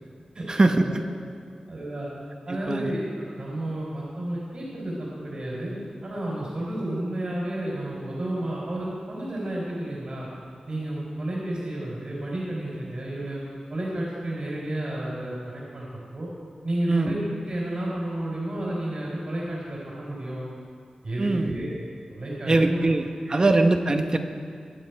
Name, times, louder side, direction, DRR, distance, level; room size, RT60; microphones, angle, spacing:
voice 1, 0.5-1.1 2.5-2.9 16.9-17.2 21.2-21.6 22.5-24.2, right 2 dB, 35° right, 6 dB, 0.9 m, -22 dB
voice 2, 1.7-2.1 2.5-5.7 6.0-10.3 10.7-13.4 13.7-15.9 16.1-16.3 16.6-17.2 17.5-20.4 21.0-21.8 22.1-22.8 23.3-23.4, right 1 dB, 55° right, -5 dB, 3.6 m, -31 dB
22.0 x 8.1 x 4.6 m, 2.3 s
wide cardioid pair, 95°, 2 cm